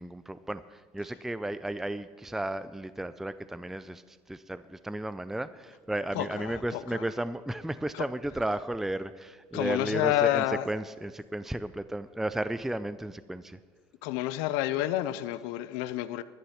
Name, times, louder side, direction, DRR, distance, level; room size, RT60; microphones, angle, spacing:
voice 1, 0.0-13.6, right 1 dB, 5° right, 0.4 m, -34 dB
voice 2, 6.1-7.1 7.9-8.0 9.5-10.6 14.0-16.2, left 14 dB, 85° left, 0.5 m, -29 dB
11.5 x 11.0 x 5.7 m
supercardioid pair, 85°, 11 cm